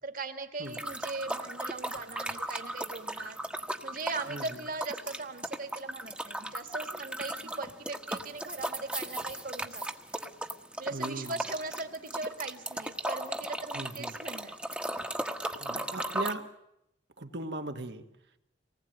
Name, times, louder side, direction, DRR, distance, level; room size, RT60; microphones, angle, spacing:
voice 1, 0.0-3.4 3.8-9.8 10.8-14.5, right 3 dB, 50° right, 7 dB, 2.3 m, -39 dB
sound 1, 0.7-16.3, right 1 dB, 5° right, 1.3 m, -36 dB
voice 2, 4.3-4.6 7.4-7.5 10.9-11.3 13.7-14.1 15.5-16.5 17.2-18.1, right 2 dB, 65° right, 6 dB, 1.8 m, -38 dB
25.0 x 19.5 x 9.1 m, 0.82 s
head